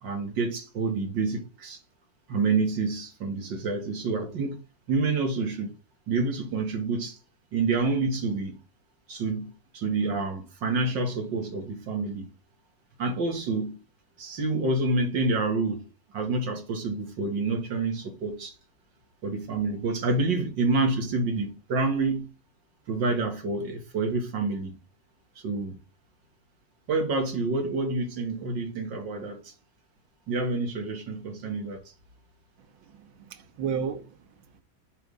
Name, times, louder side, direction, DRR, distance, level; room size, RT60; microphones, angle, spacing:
voice 1, 0.0-1.8 2.3-4.6 4.9-5.7 6.1-7.2 7.5-8.6 9.1-12.3 13.0-13.8 14.2-15.9 16.1-18.5 19.2-22.3 22.9-24.8 25.4-25.8 26.9-29.5 30.3-31.8, right 3 dB, 65° right, 2.3 m, -28 dB
voice 2, 32.6-34.6, right 7 dB, 80° right, 1.8 m, -34 dB
8.1 x 3.5 x 5.3 m
omnidirectional pair, 2.2 m